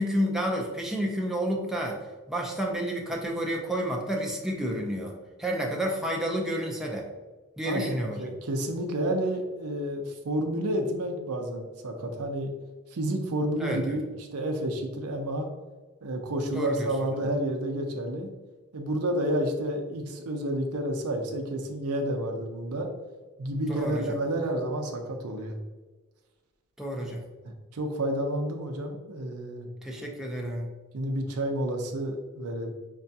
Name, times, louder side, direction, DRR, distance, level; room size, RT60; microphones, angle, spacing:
voice 1, 0.0-7.1 7.6-8.2 13.6-14.0 16.5-16.9 23.7-24.0 26.8-27.2 29.8-30.7, equal, ahead, -1 dB, 0.4 m, -30 dB
voice 2, 7.6-12.5 12.9-15.5 16.0-18.3 18.7-22.9 23.4-25.6 27.4-29.7 30.9-32.7, right 1 dB, 80° right, 4 dB, 0.6 m, -30 dB
4.8 x 2.2 x 2.7 m, 1.3 s
head